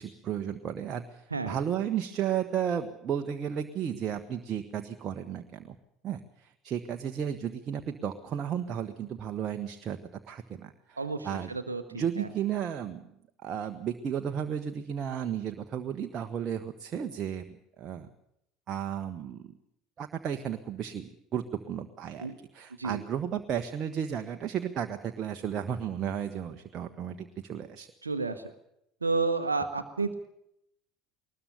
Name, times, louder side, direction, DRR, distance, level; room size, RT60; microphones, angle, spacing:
voice 1, 0.0-5.7 6.0-10.0 10.3-11.0 11.2-11.5 11.9-13.0 13.4-17.4 17.8-18.1 18.7-19.4 20.0-27.9, right 9 dB, 40° right, 6 dB, 1.3 m, -33 dB
voice 2, 11.0-12.3 22.2-22.4 22.8-23.0 28.0-28.4 29.0-30.1, right 4 dB, 80° right, 7 dB, 1.0 m, -31 dB
21.0 x 20.5 x 7.0 m, 0.79 s
figure-of-eight pair, 65°, 0 cm